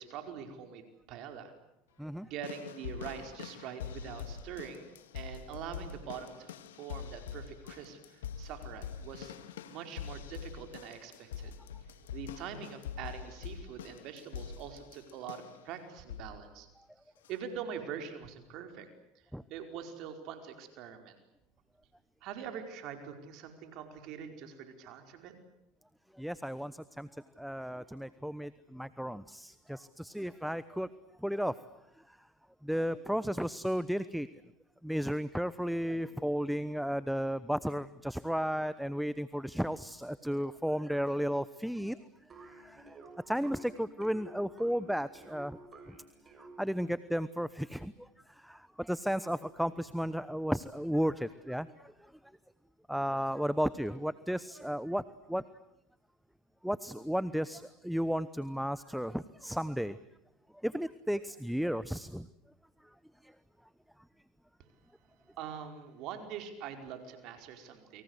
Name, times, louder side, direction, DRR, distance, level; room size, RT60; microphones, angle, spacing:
voice 1, 0.0-1.5 2.2-9.3 9.7-11.5 12.1-16.7 17.3-18.9 19.1-21.2 22.2-25.3 65.4-68.0, right 8 dB, 60° right, 6 dB, 4.9 m, -44 dB
sound 1, 2.4-15.7 16.1-16.5 17.2-17.3, left 8 dB, 90° left, 2.1 m, -44 dB
voice 2, 26.2-27.1 27.4-30.9 31.2-31.5 32.6-34.3 34.8-42.0 42.6-43.0 43.3-45.6 46.4-48.1 48.4-51.9 52.9-55.0 55.3-55.4 56.6-60.0 60.6-62.3 63.2-63.3, equal, ahead, 16 dB, 1.0 m, -34 dB
sound 2, 42.3-47.1, right 2 dB, 30° right, 7.0 m, -53 dB
29.5 x 24.0 x 8.2 m, 0.82 s
hypercardioid pair, 90°, 0 cm